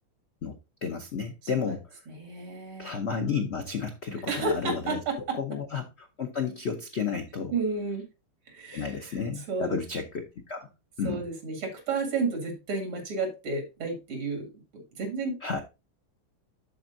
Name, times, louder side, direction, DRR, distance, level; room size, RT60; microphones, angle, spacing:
voice 1, 0.4-1.8 2.8-5.0 5.4-7.5 8.7-10.7 11.0-11.2 15.4-15.6, left 6 dB, 75° left, 5 dB, 0.6 m, -32 dB
voice 2, 2.1-2.9 4.3-5.4 7.5-8.1 8.5-9.8 11.0-15.4, right 3 dB, 85° right, 3 dB, 3.2 m, -32 dB
12.0 x 4.4 x 2.6 m, 0.27 s
omnidirectional pair, 2.3 m